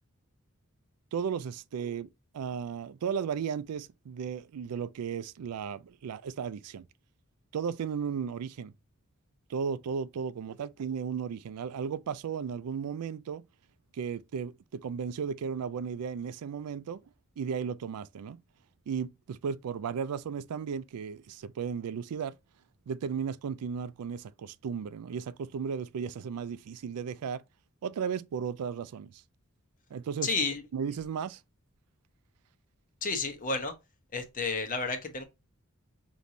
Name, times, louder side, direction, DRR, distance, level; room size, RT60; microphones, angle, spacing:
voice 1, 1.1-6.9 7.5-8.7 9.5-13.4 13.9-17.0 17.4-18.4 18.9-22.4 22.9-27.4 27.8-29.2 29.9-30.3 30.7-31.4, right 6 dB, 90° right, 0.4 m, -35 dB
voice 2, 30.2-30.6 33.0-33.7 34.1-35.2, left 4 dB, 35° left, 0.9 m, -31 dB
5.2 x 3.0 x 2.6 m
head